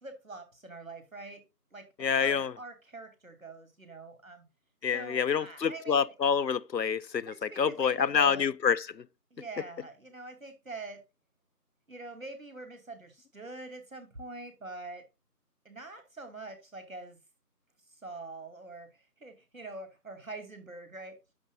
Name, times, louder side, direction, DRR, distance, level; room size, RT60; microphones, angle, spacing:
voice 1, 0.0-1.4 1.7-4.4 4.9-6.1 7.3-8.5 9.3-11.0 11.9-15.0 15.6-17.2 17.9-21.1, right 3 dB, 55° right, 2.6 m, -44 dB
voice 2, 2.0-2.5 4.8-9.1, left 7 dB, 90° left, 0.7 m, -27 dB
10.5 x 7.4 x 2.3 m
figure-of-eight pair, 175°, 49 cm